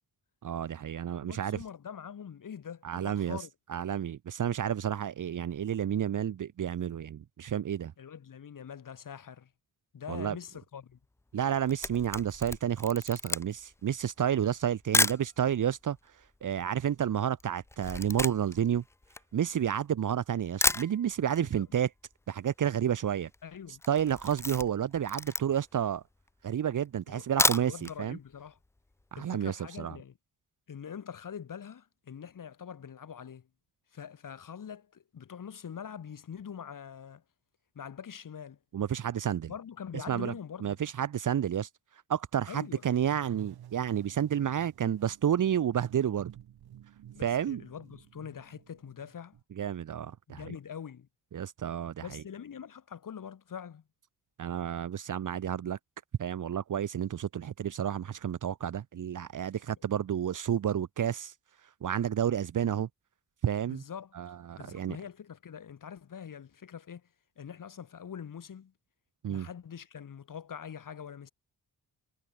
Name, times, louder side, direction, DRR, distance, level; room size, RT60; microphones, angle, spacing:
voice 1, 0.4-1.6 2.8-3.4 3.7-7.9 10.1-10.4 11.3-16.0 16.4-18.8 19.3-21.9 22.3-23.3 23.9-26.0 26.4-28.2 29.1-30.0 38.7-39.5 40.1-40.3 40.6-41.7 42.1-46.3 47.2-47.6 49.6-50.4 51.3-52.2 54.4-55.8 56.2-61.3 61.8-62.9 63.4-63.8 64.1-65.0 69.2-69.5, right 9 dB, 55° right, 1.2 m, -30 dB
voice 2, 1.2-3.5 8.0-9.5 9.9-11.0 21.4-21.6 23.4-23.8 27.1-27.2 27.6-28.6 29.2-30.1 30.7-33.5 33.9-37.2 37.7-38.6 39.5-40.8 42.5-42.8 47.1-49.4 50.3-51.1 52.0-53.8 63.6-67.0 67.4-68.7 69.3-71.3, left 8 dB, 60° left, 4.5 m, -44 dB
Camera, 11.4-15.3 16.0-16.1 16.2-19.9 20.3-20.4 20.6-21.5 21.7-21.8 22.1-22.2 22.4-22.8 23.2-23.4 23.8-25.8 26.3-26.4 27.2-28.0 28.3-28.4 28.8-28.9, left 2 dB, 10° left, 0.4 m, -31 dB
sound 1, 42.6-49.4, right 11 dB, 85° right, 3.7 m, -51 dB
cardioid pair, 110°, 37 cm